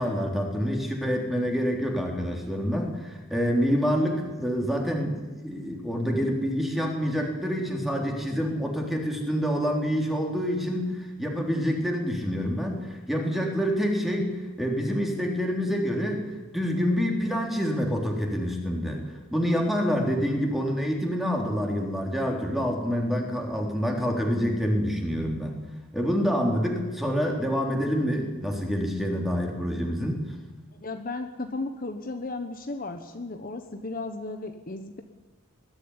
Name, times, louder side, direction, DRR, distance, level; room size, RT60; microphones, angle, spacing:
voice 1, 0.0-16.2 16.5-19.0 19.3-25.5 25.9-30.2, equal, ahead, 1 dB, 3.6 m, -27 dB
voice 2, 30.8-35.0, left 2 dB, 40° left, 6 dB, 1.2 m, -35 dB
21.0 x 13.5 x 9.9 m, 1.3 s
head